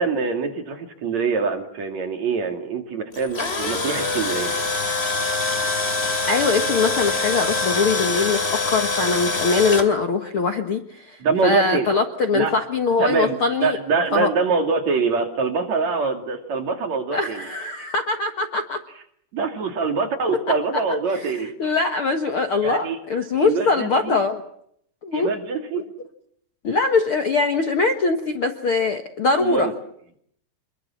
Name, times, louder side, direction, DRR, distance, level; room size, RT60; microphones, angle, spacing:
voice 1, 0.0-4.5 11.2-11.9 12.3-12.5 13.0-17.5 19.3-21.5 22.6-23.0 23.4-24.2 25.1-25.8 29.4-29.7, right 4 dB, 45° right, 4 dB, 3.4 m, -24 dB
Tools, 3.1-9.8, left 3 dB, 20° left, 2.4 m, -24 dB
voice 2, 6.3-13.8 14.1-14.3 17.1-18.8 21.1-24.4 25.0-25.3 25.7-25.8 26.6-29.7, left 4 dB, 85° left, 6 dB, 1.2 m, -22 dB
26.5 x 22.0 x 7.4 m, 0.70 s
omnidirectional pair, 4.9 m